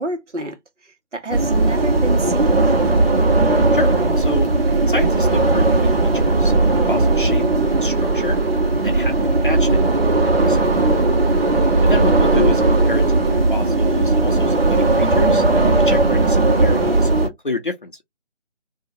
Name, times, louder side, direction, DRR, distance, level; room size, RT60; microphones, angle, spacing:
voice 1, 0.0-3.1, right 2 dB, 90° right, 1.2 m, -29 dB
sound 1, 1.3-17.3, right 2 dB, 55° right, 1.2 m, -17 dB
voice 2, 4.2-4.5 4.9-5.9 6.1-8.4 8.8-9.9 10.5-10.7 11.8-15.4 15.8-17.9, left 3 dB, 45° left, 0.6 m, -28 dB
2.7 x 2.3 x 2.7 m
figure-of-eight pair, 165°, 35 cm